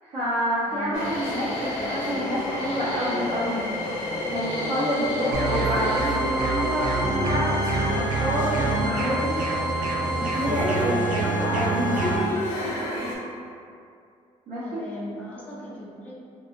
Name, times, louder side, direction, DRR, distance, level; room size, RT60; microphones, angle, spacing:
voice 1, 0.0-3.7 4.3-9.3 10.3-12.1 14.5-14.8, equal, 60° right, -14 dB, 0.7 m, -28 dB
voice 2, 0.7-1.1 1.7-2.2 14.6-16.1, left 1 dB, 10° left, -6 dB, 0.3 m, -38 dB
sound 1, 0.9-13.2, left 1 dB, 85° left, 0.8 m, -31 dB
sound 2, 1.0-2.3 2.6-3.2 4.3-6.1, left 2 dB, 50° left, 0.6 m, -42 dB
sound 3, 5.3-12.2, right 3 dB, 80° right, 0.4 m, -26 dB
2.7 x 2.3 x 2.5 m, 2.4 s
cardioid pair, 180°, 13 cm